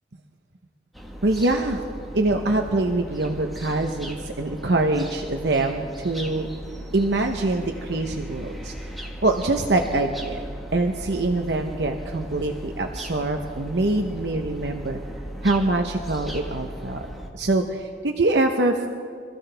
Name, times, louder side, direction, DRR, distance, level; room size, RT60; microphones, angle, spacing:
sound 1, 0.9-17.3, equal, ahead, 1.5 m, -37 dB
voice 1, 1.2-1.8 2.1-6.5 6.9-8.7 9.2-10.4 10.7-15.0 15.4-17.1 17.3-18.9, right 2 dB, 70° right, 4 dB, 0.9 m, -24 dB
25.5 x 15.0 x 3.4 m, 2.2 s
head